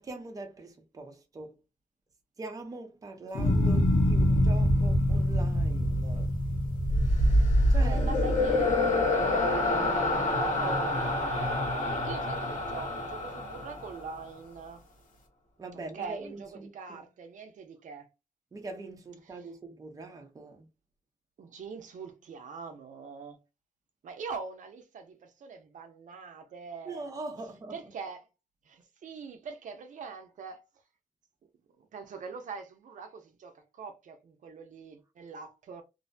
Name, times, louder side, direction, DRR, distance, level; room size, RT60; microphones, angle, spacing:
voice 1, 0.0-1.5 2.4-6.3 7.7-8.0 15.6-17.0 18.5-20.7 26.8-27.9, right 2 dB, 25° right, 0.5 m, -42 dB
sound 1, 3.3-9.7 10.1-10.7, left 1 dB, 90° left, 0.8 m, -26 dB
sound 2, 6.9-14.2, left 1 dB, 65° left, 0.9 m, -26 dB
voice 2, 7.8-14.8 15.7-18.1 19.3-19.5 21.4-23.4 24.0-27.0 27.7-28.3 28.6-30.6 31.8-35.8, right 5 dB, 70° right, 0.5 m, -43 dB
2.6 x 2.1 x 2.5 m
wide cardioid pair, 160°, 13 cm